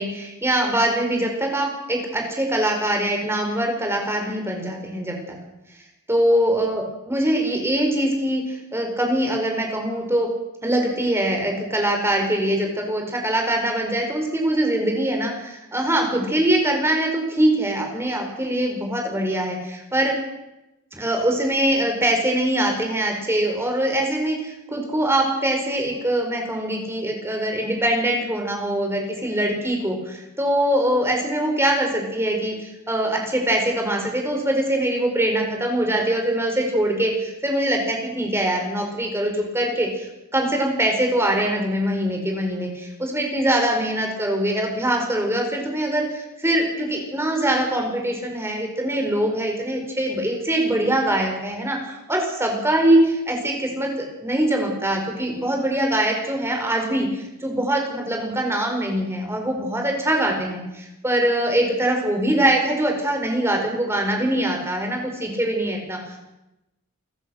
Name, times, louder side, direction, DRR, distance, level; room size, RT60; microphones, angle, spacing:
voice 1, 0.0-5.4 6.1-10.3 10.6-20.2 20.9-66.3, right 1 dB, 10° right, 2 dB, 4.8 m, -23 dB
29.0 x 14.5 x 6.5 m, 0.94 s
head